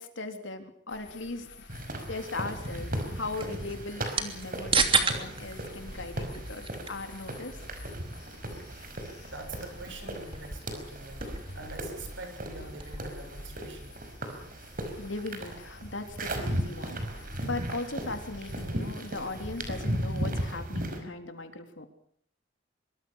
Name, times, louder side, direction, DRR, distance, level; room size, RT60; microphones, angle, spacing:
voice 1, 0.0-1.5 2.1-7.6 15.0-21.9, left 2 dB, 85° left, 7 dB, 3.5 m, -38 dB
sound 1, 0.9-20.5, left 1 dB, 60° left, 6.0 m, -49 dB
sound 2, 1.7-21.0, right 1 dB, 50° right, 5.3 m, -37 dB
sound 3, 2.5-13.2, right 5 dB, 30° right, 3.0 m, -35 dB
voice 2, 9.3-14.0, right 2 dB, 80° right, 5 dB, 7.0 m, -45 dB
24.5 x 23.5 x 6.5 m, 0.64 s
head